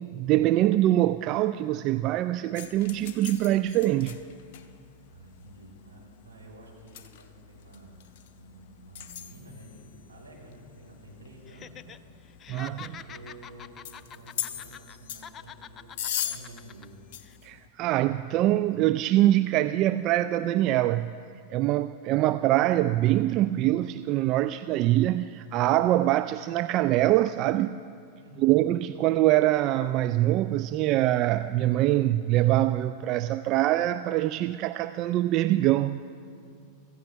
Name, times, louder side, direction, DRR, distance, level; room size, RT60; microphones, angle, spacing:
voice 1, 0.0-4.2 12.5-12.8 17.4-21.2 21.5-27.8 28.4-36.0, right 14 dB, 40° right, 12 dB, 0.3 m, -24 dB
sound 1, 2.5-17.7, left 10 dB, 50° left, 0.8 m, -41 dB
voice 2, 4.8-8.1 8.3-12.0 12.6-16.9 28.1-28.5, right 2 dB, 75° right, -4 dB, 4.5 m, -50 dB
Laughter, 11.5-12.0 12.3-15.0 15.2-16.9 17.2-17.4, left 8 dB, 25° left, 0.4 m, -45 dB
25.0 x 15.0 x 3.4 m, 2.3 s
figure-of-eight pair, 90°, 0 cm